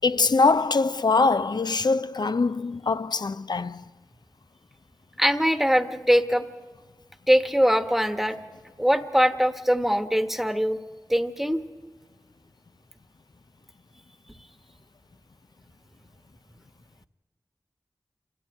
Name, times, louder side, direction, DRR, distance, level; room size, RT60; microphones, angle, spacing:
voice 1, 0.0-3.8, left 3 dB, 65° left, 0.6 m, -23 dB
voice 2, 5.2-6.4 7.3-8.4 8.8-10.8 11.1-11.6, equal, 5° right, 1.3 m, -22 dB
28.0 x 13.0 x 9.1 m
wide cardioid pair, 50°, 8 cm